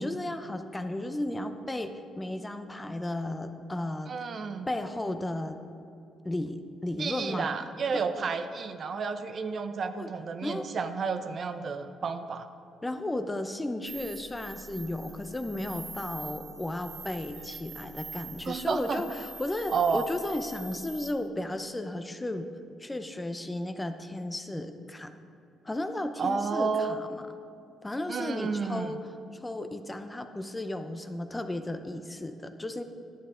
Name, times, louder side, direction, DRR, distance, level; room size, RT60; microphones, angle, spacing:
voice 1, 0.0-4.1 4.7-5.6 6.2-7.5 8.2-8.3 10.0-10.1 10.4-10.7 12.8-22.5 22.8-25.1 25.6-27.2 27.8-29.0 29.3-32.8, left 1 dB, 15° left, 8 dB, 0.6 m, -34 dB
voice 2, 4.1-4.7 7.0-12.5 18.5-19.0 19.7-20.1 26.2-27.0 28.1-29.0, right 5 dB, 50° right, 9 dB, 0.5 m, -31 dB
sound 1, 13.9-21.1, right 2 dB, 65° right, 1.6 m, -44 dB
10.5 x 9.1 x 3.7 m, 2.6 s
cardioid pair, 90°, 0 cm